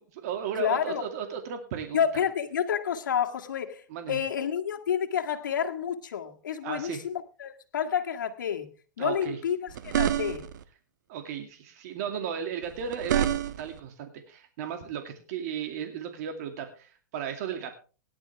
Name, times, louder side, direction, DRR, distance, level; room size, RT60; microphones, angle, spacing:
voice 1, 0.1-2.0 3.9-4.2 6.6-7.0 9.0-9.4 11.1-13.3 13.6-17.8, right 8 dB, 55° right, 2.3 m, -35 dB
voice 2, 0.6-1.0 1.9-8.7 9.0-10.5, left 8 dB, 80° left, 1.7 m, -29 dB
sound 1, 9.7-10.6 12.6-13.8, right 11 dB, 75° right, 1.2 m, -28 dB
17.5 x 10.5 x 3.4 m
hypercardioid pair, 135°, 10 cm